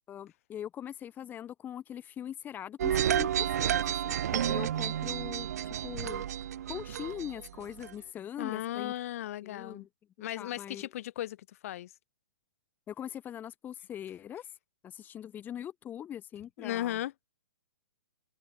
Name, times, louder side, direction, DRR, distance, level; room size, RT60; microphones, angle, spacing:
voice 1, 0.1-6.2 6.7-8.9 9.4-9.9 10.3-10.9 12.9-14.6 14.8-17.0, left 10 dB, 15° left, 4.0 m, -42 dB
sound 1, 2.8-7.9, right 10 dB, 50° right, 2.0 m, -31 dB
voice 2, 8.4-9.9 10.2-11.9 16.6-17.1, left 13 dB, 40° left, 6.2 m, -36 dB
open air
figure-of-eight pair, 120°, 11 cm